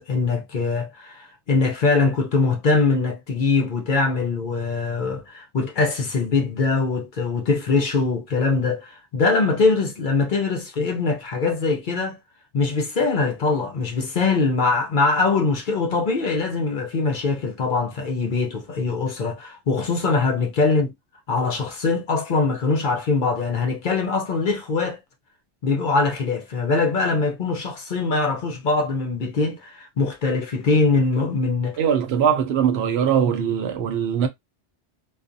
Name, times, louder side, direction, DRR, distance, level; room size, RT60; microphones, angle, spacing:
voice 1, 0.1-12.2 12.5-20.9 21.3-25.0 25.6-31.8, left 3 dB, 55° left, 0.7 m, -22 dB
voice 2, 31.8-34.3, right 8 dB, 70° right, 0.8 m, -21 dB
2.4 x 2.1 x 2.5 m
omnidirectional pair, 1.1 m